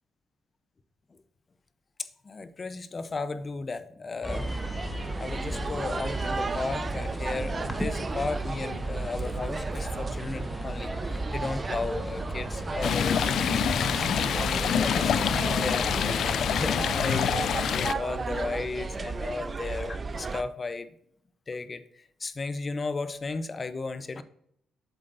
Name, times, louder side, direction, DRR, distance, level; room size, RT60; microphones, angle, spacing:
voice 1, 2.2-4.7 5.2-14.3 14.8-20.9 21.5-24.2, left 3 dB, 35° left, 11 dB, 0.7 m, -35 dB
sound 1, 4.2-16.7, equal, 5° left, 1.1 m, -37 dB
sound 2, 4.3-20.4, right 4 dB, 35° right, 0.4 m, -34 dB
Stream, 12.8-17.9, left 8 dB, 65° left, 0.3 m, -26 dB
8.1 x 7.3 x 2.6 m, 0.70 s
cardioid pair, 90°, 0 cm